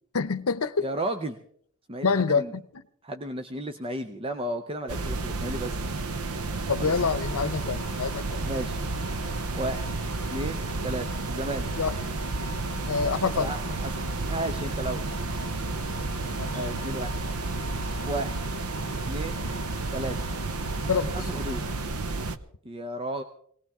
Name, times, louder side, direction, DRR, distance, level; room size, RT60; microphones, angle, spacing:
voice 1, 0.1-0.9 2.0-2.8 6.7-8.4 11.8-12.0 12.9-13.5 16.4-16.6 20.9-21.2, left 5 dB, 75° left, 0.8 m, -27 dB
voice 2, 0.8-1.4 1.9-2.5 3.0-5.8 6.9-7.0 8.4-8.8 9.5-9.9 10.3-11.7 13.4-15.0 16.5-17.1 18.0-18.4 19.1-19.4 19.9-20.2 21.1-21.6 22.6-23.2, right 1 dB, 25° right, 0.7 m, -33 dB
sound 1, 4.9-22.4, right 3 dB, 85° right, 0.9 m, -31 dB
sound 2, 6.9-21.9, left 3 dB, 30° left, 1.1 m, -45 dB
21.5 x 18.5 x 3.6 m
head